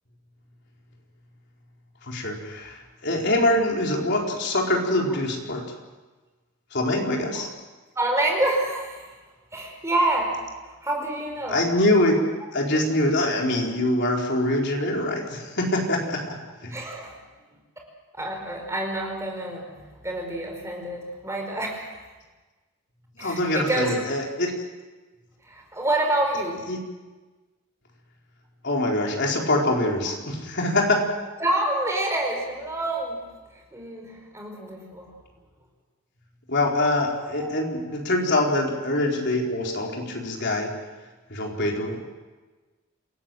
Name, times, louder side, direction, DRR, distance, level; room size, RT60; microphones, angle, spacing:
voice 1, 2.0-5.6 6.7-7.5 11.5-12.1 12.5-16.8 23.2-24.5 26.7-26.8 28.6-31.1 36.5-40.7 41.3-42.0, left 1 dB, 50° left, 0 dB, 4.2 m, -24 dB
voice 2, 7.9-9.1 9.5-10.4 10.6-11.6 12.4-12.5 16.7-17.2 18.1-22.0 23.2-24.0 25.4-26.7 31.4-33.2 33.5-35.1 37.1-37.5, right 1 dB, 15° right, 1 dB, 5.0 m, -27 dB
28.0 x 17.5 x 7.7 m, 1.2 s
head